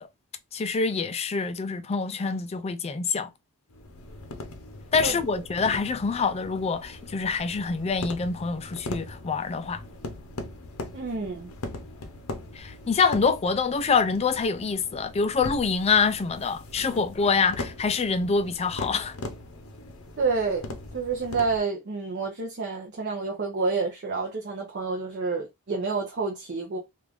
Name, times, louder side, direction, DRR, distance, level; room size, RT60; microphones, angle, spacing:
voice 1, 0.5-3.3 4.9-9.8 12.5-19.1, left 5 dB, 30° left, 0.3 m, -26 dB
sound 1, 3.7-21.6, left 2 dB, 70° left, 0.7 m, -40 dB
voice 2, 10.9-11.5 20.2-26.8, right 4 dB, 50° right, 0.6 m, -29 dB
3.2 x 2.4 x 3.4 m
head